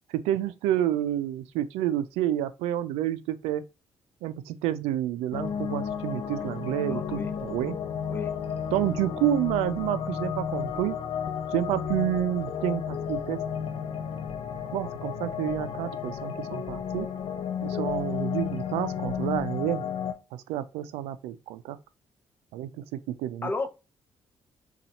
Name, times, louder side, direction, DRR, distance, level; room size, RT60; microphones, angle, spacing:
voice 1, 0.1-3.6 4.2-7.8 8.7-11.0 11.5-13.4 14.7-17.1 17.6-19.8 20.3-21.8 22.5-23.5, right 12 dB, 90° right, 0.4 m, -29 dB
sound 1, 5.3-20.1, left 8 dB, 60° left, 0.6 m, -32 dB
voice 2, 6.8-7.3 8.1-8.3 23.4-23.7, left 3 dB, 20° left, 0.7 m, -33 dB
4.0 x 2.4 x 4.3 m
supercardioid pair, 55°, 10 cm